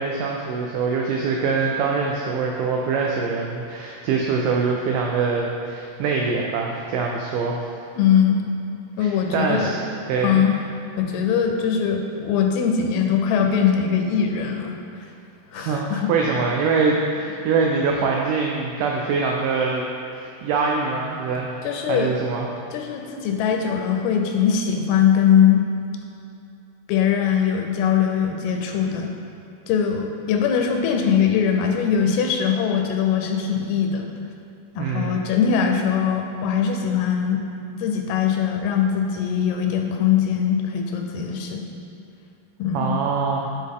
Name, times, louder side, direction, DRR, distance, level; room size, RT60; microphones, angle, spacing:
voice 1, 0.0-7.6 9.0-9.8 10.1-10.5 15.5-19.8 20.2-21.6 21.9-22.5 34.8-35.2 42.7-43.5, right 4 dB, 90° right, 0 dB, 1.9 m, -24 dB
voice 2, 8.0-8.4 9.0-9.8 10.2-10.5 11.0-14.8 15.5-16.1 21.6-22.1 22.7-25.6 26.9-29.1 29.7-34.1 34.8-37.4 37.8-41.7 42.6-43.0, left 8 dB, 90° left, 3 dB, 2.6 m, -21 dB
8.4 x 3.8 x 3.6 m, 2.7 s
omnidirectional pair, 4.4 m